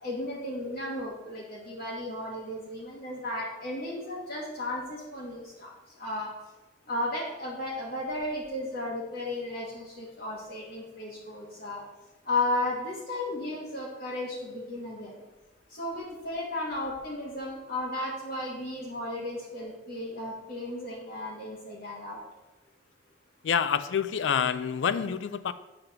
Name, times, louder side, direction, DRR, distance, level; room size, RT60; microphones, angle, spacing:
voice 1, 0.0-5.7 6.0-6.3 6.9-11.8 12.2-15.2 15.7-22.2, left 2 dB, 55° left, -4 dB, 1.3 m, -34 dB
voice 2, 23.4-25.5, left 7 dB, 85° left, 13 dB, 0.4 m, -27 dB
7.7 x 3.4 x 5.7 m, 1.1 s
head